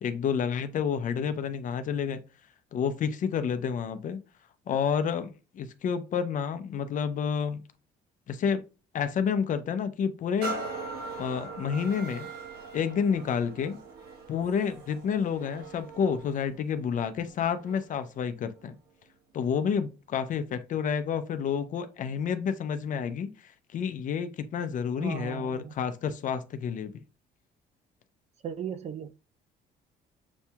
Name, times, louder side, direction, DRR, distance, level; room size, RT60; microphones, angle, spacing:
voice 1, 0.0-2.2 2.7-4.2 4.7-7.6 8.3-8.6 8.9-10.5 11.2-12.3 12.7-13.8 14.3-18.8 19.3-26.9, left 7 dB, 50° left, 0.6 m, -29 dB
sound 1, 10.4-18.0 18.6-18.7, right 3 dB, 65° right, 1.2 m, -41 dB
voice 2, 25.0-25.7 28.4-29.2, right 8 dB, 40° right, 0.5 m, -37 dB
7.0 x 2.7 x 2.3 m
cardioid pair, 110°, 17 cm